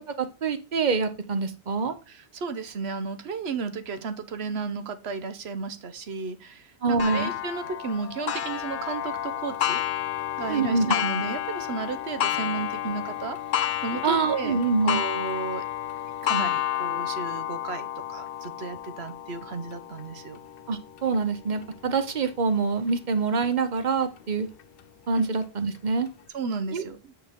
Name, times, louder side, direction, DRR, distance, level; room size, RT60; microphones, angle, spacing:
voice 1, 0.2-1.9 6.8-7.3 10.5-10.9 14.0-15.0 20.7-24.5 25.1-26.1 26.7-26.8, right 4 dB, 50° right, 10 dB, 0.9 m, -25 dB
voice 2, 2.1-9.8 10.4-13.4 13.8-15.6 16.2-20.4 25.2-25.3 26.3-27.1, right 5 dB, 90° right, 11 dB, 1.1 m, -33 dB
Clock, 7.0-22.3 22.9-23.0 23.5-23.6 24.6-24.7, left 11 dB, 65° left, 0.8 m, -31 dB
8.9 x 4.5 x 3.6 m, 0.31 s
omnidirectional pair, 1.1 m